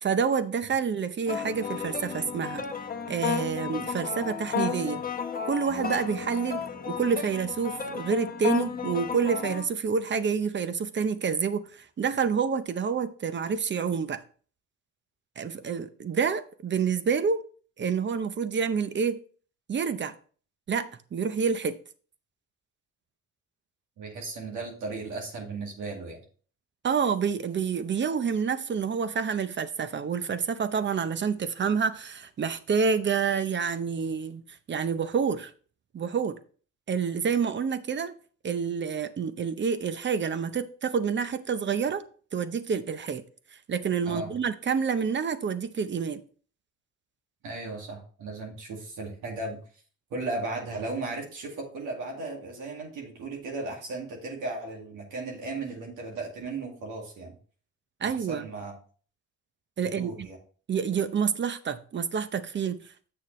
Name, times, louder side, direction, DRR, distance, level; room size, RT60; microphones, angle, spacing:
voice 1, 0.0-2.7 3.1-5.0 5.5-14.2 15.4-17.4 17.8-19.2 19.7-20.1 20.7-21.8 26.8-34.4 34.7-35.5 35.9-36.4 36.9-38.1 38.4-42.0 42.3-43.2 43.7-46.2 58.0-58.5 59.8-60.1 60.7-62.8, right 6 dB, 40° right, 0.7 m, -28 dB
sound 1, 1.3-9.7, left 6 dB, 30° left, 1.0 m, -33 dB
voice 2, 24.0-26.2 44.1-44.4 47.4-49.6 50.1-57.4 58.0-58.7 60.0-60.4, right 3 dB, 90° right, 2.2 m, -36 dB
7.7 x 6.5 x 3.2 m
cardioid pair, 90°, 30 cm